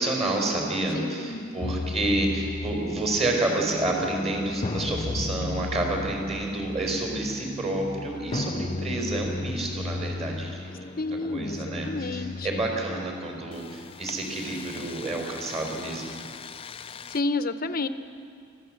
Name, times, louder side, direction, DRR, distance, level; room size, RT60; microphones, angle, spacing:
voice 1, 0.0-11.0 11.3-16.2, right 2 dB, 30° right, 1 dB, 4.6 m, -29 dB
voice 2, 0.9-1.5 11.0-12.7 17.1-17.9, left 3 dB, 45° left, 11 dB, 0.8 m, -30 dB
sound 1, 1.6-17.2, left 3 dB, 25° left, 0.4 m, -36 dB
24.0 x 14.5 x 7.8 m, 2.4 s
head